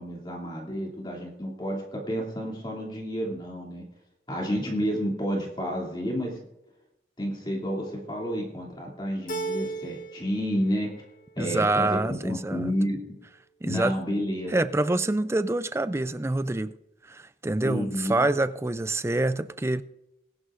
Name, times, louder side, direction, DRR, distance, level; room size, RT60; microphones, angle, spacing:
voice 1, 0.0-3.8 4.3-6.4 7.2-10.9 11.4-13.0 13.6-14.5 17.6-18.3, equal, 25° left, 2.7 m, -30 dB
Keyboard (musical), 9.3-10.4 10.7-11.5, right 3 dB, 45° left, 1.4 m, -35 dB
voice 2, 11.4-12.7 13.6-13.9 14.5-16.7 17.1-19.8, right 2 dB, 15° right, 0.4 m, -26 dB
21.0 x 11.0 x 2.6 m
head